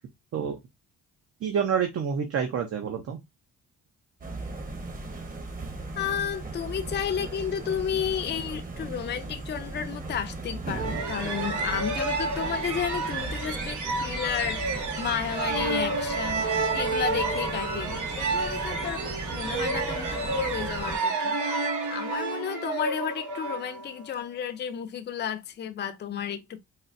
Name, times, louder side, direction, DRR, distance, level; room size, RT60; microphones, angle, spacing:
voice 1, 1.4-3.2, right 7 dB, 50° right, 0.8 m, -28 dB
sound 1, 4.2-21.0, right 2 dB, 30° right, 1.0 m, -37 dB
voice 2, 6.0-19.0 19.3-21.6 21.9-26.6, left 8 dB, 35° left, 0.5 m, -32 dB
sound 2, 10.7-24.2, right 3 dB, 75° right, 1.1 m, -30 dB
4.1 x 2.1 x 2.6 m
cardioid pair, 90°, 30 cm